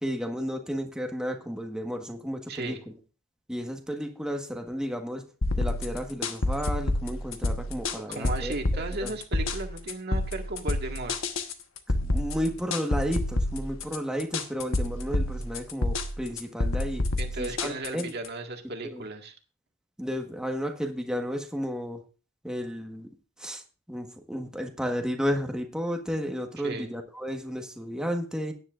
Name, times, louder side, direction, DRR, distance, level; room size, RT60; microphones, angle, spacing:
voice 1, 0.0-2.8 3.5-5.2 5.6-9.1 11.9-17.1 17.4-18.1 18.8-19.0 20.0-22.0 22.4-23.1 23.4-23.6 23.9-28.5, equal, 5° right, 4 dB, 1.4 m, -33 dB
voice 2, 2.5-2.8 8.1-11.2 17.2-19.3 26.6-26.9, right 2 dB, 55° right, 3 dB, 1.8 m, -35 dB
sound 1, 5.4-18.3, left 2 dB, 75° left, 1.3 m, -29 dB
16.5 x 10.0 x 2.5 m, 0.34 s
head